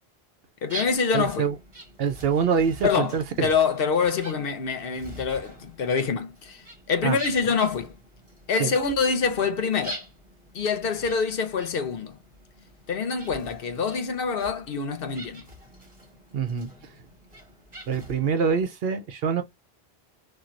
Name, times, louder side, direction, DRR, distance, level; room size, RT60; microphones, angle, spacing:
voice 1, 0.6-1.5 2.8-3.2 3.4-6.6 6.9-7.9 8.5-10.0 10.5-12.1 12.9-15.4, left 5 dB, 65° left, 0.8 m, -25 dB
sound 1, 0.7-18.6, right 1 dB, 30° right, 1.7 m, -45 dB
voice 2, 1.1-1.5 2.0-3.5 7.0-7.2 8.6-8.7 16.3-16.7 17.9-19.4, right 6 dB, 70° right, 0.8 m, -25 dB
4.3 x 2.3 x 2.4 m
omnidirectional pair, 1.1 m